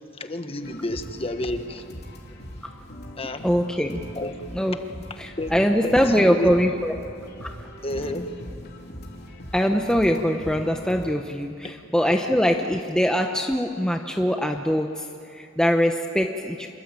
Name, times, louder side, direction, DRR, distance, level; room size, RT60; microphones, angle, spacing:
voice 1, 0.1-1.8 3.2-3.5 4.1-4.5 5.4-6.6 7.8-8.4 11.6-11.7, left 1 dB, 30° left, 7 dB, 1.5 m, -30 dB
sound 1, 0.6-11.1, equal, 55° left, 3.8 m, -40 dB
voice 2, 3.4-4.0 4.5-4.8 5.2-6.9 7.4-7.6 9.5-16.7, equal, 5° left, 3 dB, 0.9 m, -22 dB
27.5 x 23.5 x 9.0 m, 2.6 s
head